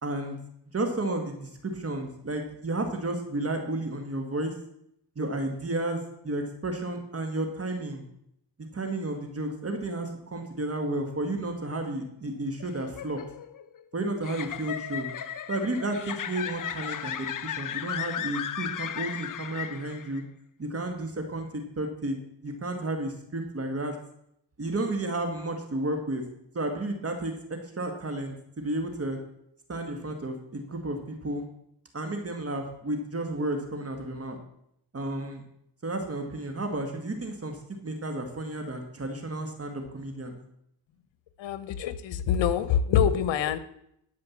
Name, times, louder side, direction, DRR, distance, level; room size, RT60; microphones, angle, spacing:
voice 1, 0.0-0.4 0.7-4.5 5.2-8.0 8.7-13.2 13.9-15.1 15.5-20.2 20.6-22.2 22.4-24.0 24.6-26.2 26.5-29.2 29.7-31.4 31.9-34.4 34.9-35.4 35.8-40.4, right 2 dB, 30° right, 4 dB, 1.9 m, -32 dB
sound 1, 12.6-20.2, left 9 dB, 45° left, 0.8 m, -35 dB
voice 2, 41.4-43.6, left 8 dB, 75° left, 14 dB, 1.1 m, -25 dB
12.5 x 5.1 x 7.3 m, 0.75 s
cardioid pair, 85°, 46 cm